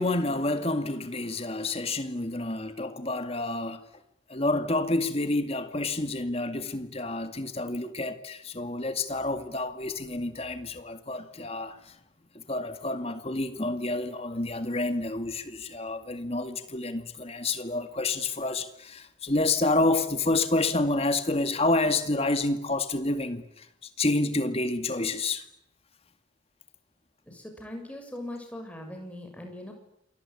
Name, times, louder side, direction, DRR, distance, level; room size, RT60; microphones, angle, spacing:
voice 1, 0.0-3.8 4.3-11.8 12.5-23.7 24.0-25.4, left 2 dB, 30° left, 2.3 m, -29 dB
voice 2, 27.3-29.7, left 1 dB, 5° left, 6.9 m, -40 dB
27.5 x 21.0 x 10.0 m
head